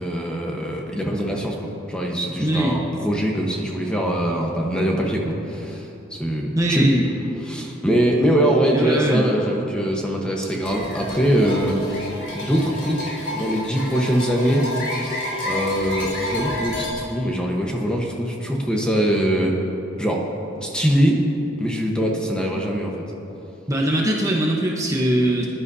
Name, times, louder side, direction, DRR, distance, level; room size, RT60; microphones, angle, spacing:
voice 1, 0.0-5.9 6.1-6.9 7.4-14.7 14.9-19.5 20.0-20.2 20.6-21.2 21.6-23.0, equal, 5° left, -1 dB, 1.1 m, -22 dB
voice 2, 2.4-2.8 6.6-7.0 8.7-9.3 23.7-25.5, right 1 dB, 15° right, -2 dB, 1.0 m, -21 dB
sound 1, 10.6-16.9, left 1 dB, 80° left, 2.5 m, -30 dB
20.5 x 11.0 x 2.7 m, 2.9 s
head